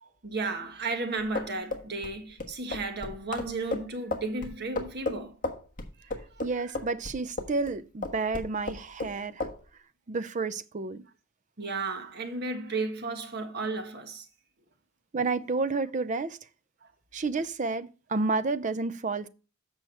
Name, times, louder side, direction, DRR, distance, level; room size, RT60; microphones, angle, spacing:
voice 1, 0.0-5.4 6.0-6.1 6.4-6.5 11.6-14.2, right 3 dB, 55° right, 1.4 m, -34 dB
sound 1, 1.2-7.7 8.0-9.1 9.4-9.6, left 2 dB, 45° left, 1.3 m, -34 dB
voice 2, 6.4-9.5 10.1-11.0 15.1-16.4 17.1-19.3, right 3 dB, 40° right, 0.5 m, -30 dB
7.9 x 6.1 x 4.3 m
head